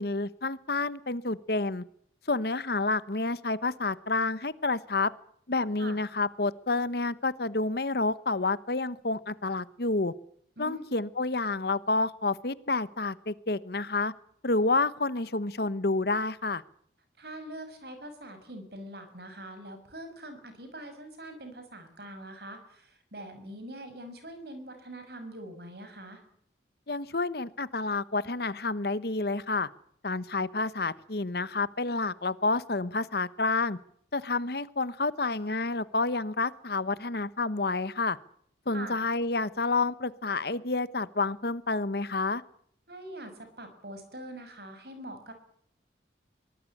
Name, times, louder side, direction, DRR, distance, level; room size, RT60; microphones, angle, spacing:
voice 1, 0.0-1.8 2.3-5.1 5.5-10.1 10.6-14.1 14.4-16.6 26.9-29.7 30.0-33.8 34.1-38.2 38.7-42.4, left 3 dB, 55° left, 16 dB, 1.0 m, -29 dB
voice 2, 17.2-26.2 38.7-38.9 42.9-45.3, right 1 dB, 60° right, 8 dB, 6.2 m, -43 dB
24.0 x 18.5 x 8.5 m, 0.67 s
head